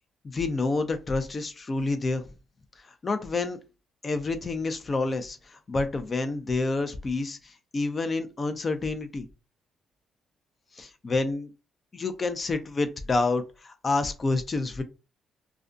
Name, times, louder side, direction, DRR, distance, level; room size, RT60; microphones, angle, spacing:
voice 1, 0.2-2.2 3.0-3.6 4.0-9.3 10.8-11.5 11.9-14.8, left 3 dB, 35° left, 0.5 m, -28 dB
2.4 x 2.2 x 2.5 m
cardioid pair, 90°, 0 cm